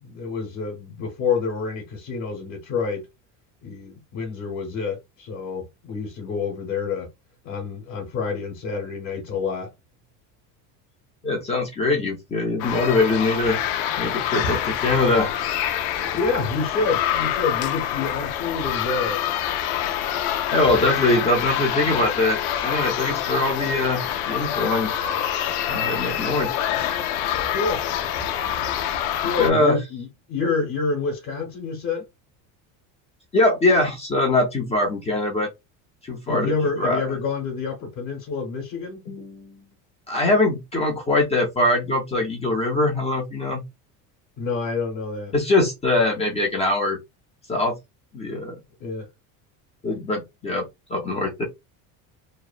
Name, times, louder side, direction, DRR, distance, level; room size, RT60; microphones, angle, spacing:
voice 1, 0.0-3.1 3.6-7.1 7.4-9.7 16.1-19.2 27.5-27.8 29.2-32.0 36.3-39.7 44.4-45.3 48.8-49.1, left 4 dB, 50° left, 0.9 m, -28 dB
voice 2, 11.2-13.7 14.0-15.5 20.5-24.9 25.7-26.7 29.2-29.8 33.3-35.5 36.0-36.5 36.8-37.0 40.1-43.6 45.3-47.0 47.5-47.8 48.1-48.6 49.8-50.6 50.9-51.4, left 2 dB, 20° left, 0.4 m, -22 dB
sound 1, 12.6-29.5, left 10 dB, 85° left, 0.5 m, -26 dB
2.8 x 2.1 x 2.3 m
cardioid pair, 160°, 37 cm